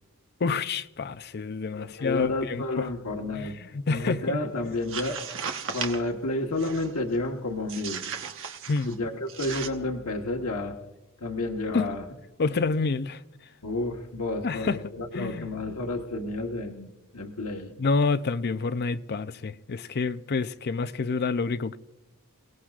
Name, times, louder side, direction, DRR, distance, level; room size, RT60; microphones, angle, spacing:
voice 1, 0.4-2.9 3.3-4.4 8.7-9.0 11.7-11.9 12.4-13.2 14.4-15.5 17.8-21.8, left 4 dB, 50° left, 0.5 m, -28 dB
voice 2, 1.7-3.5 3.9-5.2 5.7-8.0 8.8-10.8 11.2-12.0 13.6-17.7, left 2 dB, 85° left, 1.3 m, -31 dB
sound 1, 4.7-6.1 6.6-7.0 7.7-9.0 9.3-9.7, right 6 dB, 65° right, 1.2 m, -36 dB
29.0 x 17.5 x 2.5 m
head